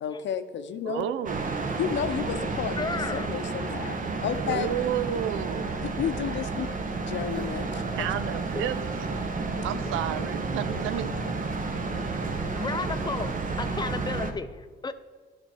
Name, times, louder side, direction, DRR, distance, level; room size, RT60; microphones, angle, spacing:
voice 1, 0.0-1.0 1.8-4.7 5.8-6.7 7.1-8.1 9.7-9.8, left 8 dB, 65° left, 10 dB, 0.7 m, -32 dB
voice 2, 0.8-1.6 4.4-5.7 8.0-9.1 9.6-11.1, right 11 dB, 85° right, 14 dB, 0.5 m, -31 dB
sound 1, 1.2-14.3, right 3 dB, 40° right, 1.1 m, -31 dB
voice 3, 2.8-3.3 8.6-8.7 12.5-14.9, left 4 dB, 20° left, 11 dB, 0.6 m, -33 dB
12.0 x 6.0 x 4.5 m, 1.5 s
cardioid pair, 90°, 20 cm